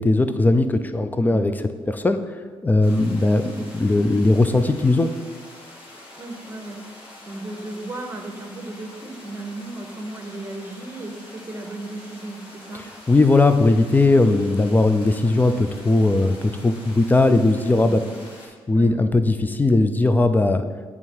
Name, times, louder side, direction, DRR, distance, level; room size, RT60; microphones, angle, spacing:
voice 1, 0.0-1.5 2.0-2.2 2.6-5.1 13.1-18.0 18.7-20.6, left 2 dB, 15° left, 9 dB, 0.5 m, -18 dB
voice 2, 1.3-1.6 6.2-6.8 7.2-12.9 17.7-17.9 18.7-19.0, right 2 dB, 20° right, 3 dB, 1.1 m, -35 dB
sound 1, 2.8-18.5, left 1 dB, 65° left, 1.9 m, -44 dB
8.3 x 3.6 x 4.5 m, 1.5 s
cardioid pair, 90°, 10 cm